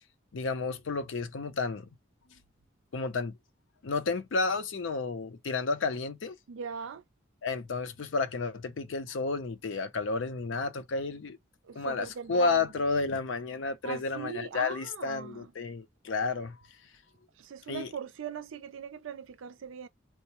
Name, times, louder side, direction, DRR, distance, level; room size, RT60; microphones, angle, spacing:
voice 1, 0.3-1.9 2.9-3.4 3.8-6.4 7.4-11.4 11.7-16.6 17.7-17.9, left 4 dB, 70° left, 0.5 m, -31 dB
voice 2, 6.5-7.0 11.7-12.6 13.8-15.5 17.4-19.9, right 6 dB, 75° right, 0.4 m, -40 dB
4.4 x 2.0 x 2.8 m
head